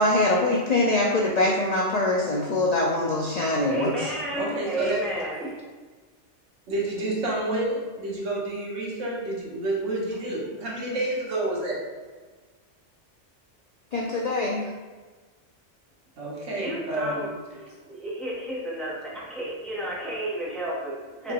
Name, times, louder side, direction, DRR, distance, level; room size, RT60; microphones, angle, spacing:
voice 1, 0.0-3.9 13.9-14.6, left 2 dB, 60° left, -2 dB, 0.4 m, -23 dB
voice 2, 3.6-5.5 16.5-21.3, right 1 dB, ahead, -6 dB, 0.7 m, -32 dB
voice 3, 4.3-5.0 6.7-11.8 16.2-17.2, right 2 dB, 85° right, -4 dB, 1.4 m, -29 dB
5.1 x 2.9 x 2.9 m, 1.4 s
omnidirectional pair, 1.2 m